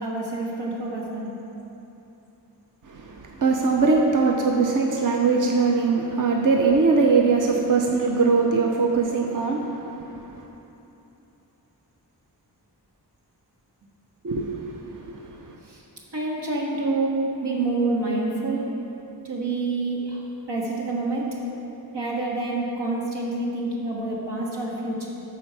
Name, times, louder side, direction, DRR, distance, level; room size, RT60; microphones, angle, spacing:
voice 1, 0.0-1.4 15.6-15.8 16.1-18.7 19.2-21.3 21.9-25.1, right 2 dB, 85° right, -3 dB, 1.6 m, -27 dB
voice 2, 2.8-10.4 14.2-15.6, right 4 dB, 50° right, 0 dB, 0.7 m, -22 dB
13.0 x 4.5 x 4.8 m, 2.9 s
wide cardioid pair, 90°, 41 cm